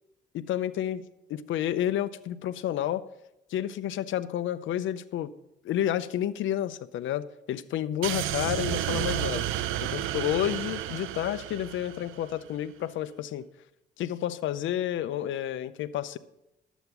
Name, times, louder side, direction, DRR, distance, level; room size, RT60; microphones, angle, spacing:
voice 1, 0.3-1.0 1.3-3.0 3.5-5.3 5.6-9.5 9.8-13.5 14.0-16.2, left 11 dB, 75° left, 14 dB, 0.6 m, -30 dB
sound 1, 8.0-12.4, right 12 dB, 90° right, 0.7 m, -31 dB
11.5 x 8.1 x 5.9 m, 0.89 s
cardioid pair, 90°, 20 cm